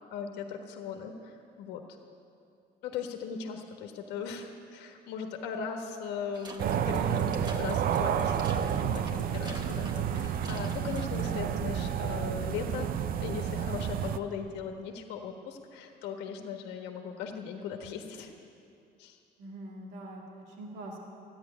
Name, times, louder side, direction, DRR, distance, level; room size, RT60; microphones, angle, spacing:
voice 1, 0.1-1.8 2.8-18.3 19.0-19.2, left 6 dB, 90° left, 4 dB, 1.4 m, -39 dB
sound 1, 6.3-11.4, right 2 dB, 25° right, 1.4 m, -47 dB
sound 2, 6.6-14.2, right 9 dB, 60° right, 0.6 m, -30 dB
voice 2, 19.4-21.0, right 1 dB, 90° right, -1 dB, 2.2 m, -43 dB
14.0 x 10.0 x 9.9 m, 2.6 s
cardioid pair, 110°, 17 cm